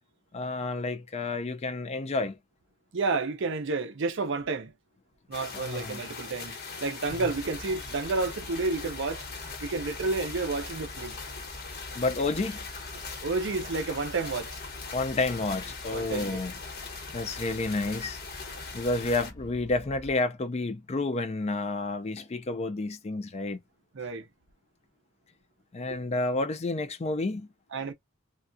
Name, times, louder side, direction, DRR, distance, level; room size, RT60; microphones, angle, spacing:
voice 1, 0.3-2.4 5.5-6.0 11.9-12.6 14.9-16.5 17.1-18.2 18.7-23.6 25.7-27.5, left 2 dB, 30° left, 0.4 m, -30 dB
voice 2, 2.9-4.7 5.3-9.2 9.6-11.2 13.2-14.6 15.9-16.4 23.9-24.3 27.7-27.9, right 3 dB, 60° right, 0.6 m, -30 dB
sound 1, 5.3-19.3, left 4 dB, 50° left, 1.0 m, -41 dB
sound 2, 7.1-20.1, equal, 15° left, 0.9 m, -47 dB
3.4 x 2.3 x 2.5 m
head